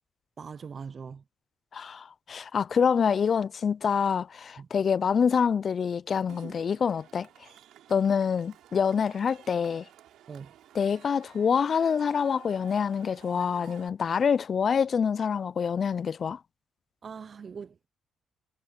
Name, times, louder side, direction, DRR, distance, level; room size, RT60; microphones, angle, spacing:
voice 1, 0.4-1.2 4.6-4.7 10.3-10.5 17.0-17.9, right 6 dB, 45° right, 0.5 m, -41 dB
voice 2, 1.7-7.3 7.9-9.9 10.7-16.4, left 6 dB, 50° left, 0.3 m, -26 dB
Cheering / Crowd, 6.3-13.9, right 12 dB, 80° right, 5.4 m, -53 dB
cardioid pair, 90°, 0 cm